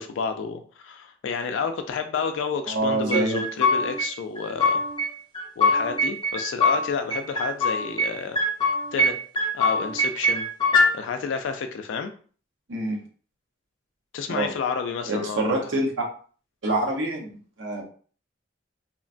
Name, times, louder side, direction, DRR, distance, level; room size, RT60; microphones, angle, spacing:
voice 1, 0.0-4.8 5.6-8.4 8.9-9.1 9.5-10.5 10.9-12.1 14.1-15.7, left 5 dB, 80° left, 6 dB, 0.3 m, -30 dB
voice 2, 2.7-3.4 12.7-13.0 14.3-14.5 15.1-15.9 16.6-17.3 17.6-17.8, right 2 dB, 85° right, 0 dB, 0.8 m, -25 dB
sound 1, 3.1-4.1 4.4-5.1 5.3-6.8 7.1-8.1 8.4-9.1 9.4-10.9, left 2 dB, 25° left, 0.6 m, -22 dB
3.0 x 2.1 x 2.5 m, 0.42 s
head